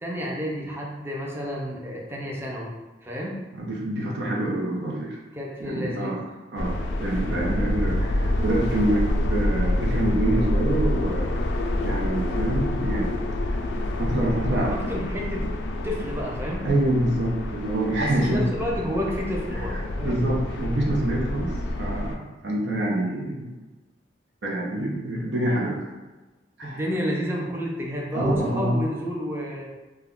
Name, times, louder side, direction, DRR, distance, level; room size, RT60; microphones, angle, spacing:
voice 1, 0.0-2.7 3.0-3.4 5.3-6.1 14.6-15.5 15.8-16.7 18.0-20.2 26.6-29.7, equal, 15° right, -3 dB, 0.5 m, -30 dB
voice 2, 3.5-5.2 5.6-6.2 6.5-11.4 11.8-13.1 13.4-13.6 14.0-14.9 16.6-18.5 20.0-23.5 24.4-25.9 26.6-26.8 28.1-28.8, right 1 dB, 80° right, -3 dB, 0.6 m, -26 dB
sound 1, 6.6-22.2, left 1 dB, 75° left, 0.3 m, -27 dB
2.2 x 2.1 x 3.6 m, 1.2 s
head